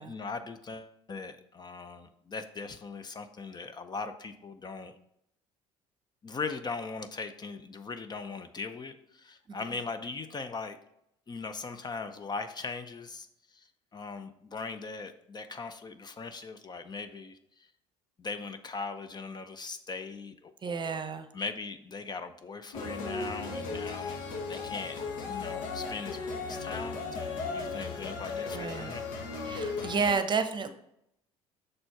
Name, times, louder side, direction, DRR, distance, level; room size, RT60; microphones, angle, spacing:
voice 1, 0.0-4.9 6.2-10.8 11.3-17.7 18.2-21.0 21.3-24.2 24.4-25.0 25.3-29.0, left 4 dB, 30° left, 9 dB, 0.6 m, -40 dB
voice 2, 20.6-21.3 28.5-29.0 29.4-30.7, right 5 dB, 35° right, 9 dB, 0.8 m, -31 dB
sound 1, 22.7-30.1, left 4 dB, 75° left, 1.2 m, -36 dB
6.6 x 4.3 x 4.6 m, 0.76 s
supercardioid pair, 75°, 14 cm